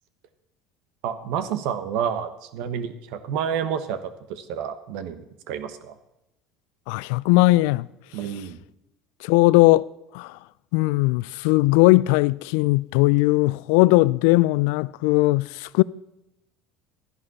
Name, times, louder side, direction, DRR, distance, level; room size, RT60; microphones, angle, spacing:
voice 1, 1.0-5.9 8.1-8.6, right 8 dB, 70° right, 1.3 m, -29 dB
voice 2, 6.9-7.9 9.2-9.9 10.1-10.5 10.7-15.8, left 21 dB, 75° left, 0.3 m, -19 dB
13.0 x 10.5 x 4.3 m
hypercardioid pair, 85°, 0 cm